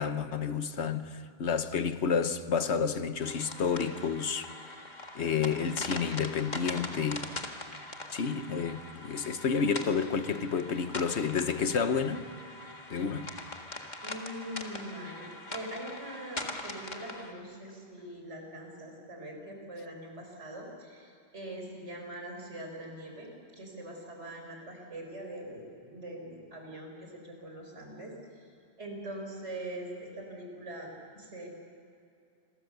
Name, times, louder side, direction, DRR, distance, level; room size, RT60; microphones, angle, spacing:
voice 1, 0.0-4.5 5.1-7.3 8.1-12.3 12.9-13.4, left 6 dB, 75° left, 1.3 m, -30 dB
sound 1, 3.2-17.3, left 2 dB, 40° left, 1.9 m, -42 dB
voice 2, 14.0-28.1 28.8-31.5, right 1 dB, 90° right, 5.2 m, -43 dB
28.5 x 22.5 x 6.9 m
omnidirectional pair, 1.1 m